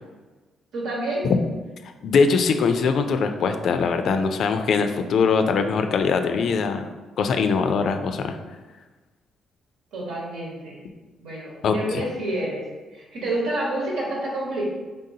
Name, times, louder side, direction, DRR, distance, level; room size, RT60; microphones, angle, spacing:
voice 1, 0.7-1.3 9.9-10.8 11.2-12.6 12.9-14.6, right 1 dB, 85° right, -3 dB, 1.2 m, -28 dB
voice 2, 2.0-6.9 7.2-8.4 11.6-12.0, left 5 dB, 65° left, 7 dB, 0.3 m, -22 dB
3.8 x 3.5 x 2.7 m, 1.2 s
cardioid pair, 90°, 0 cm